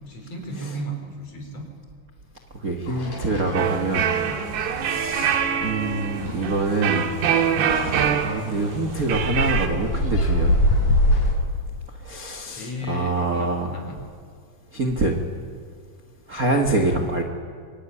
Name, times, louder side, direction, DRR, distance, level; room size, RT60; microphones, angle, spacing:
voice 1, 0.0-1.6 4.9-5.0 12.5-14.0, equal, 35° left, 3 dB, 5.4 m, -34 dB
voice 2, 2.6-4.1 4.8-7.1 7.6-10.6 12.0-13.7 14.7-15.2 16.3-17.2, right 2 dB, 45° right, 3 dB, 1.1 m, -25 dB
sound 1, 2.9-11.3, left 1 dB, 60° left, 7.8 m, -26 dB
sound 2, 3.5-9.7, right 8 dB, 85° right, 3.6 m, -25 dB
25.0 x 23.5 x 10.0 m, 2.1 s
omnidirectional pair, 4.7 m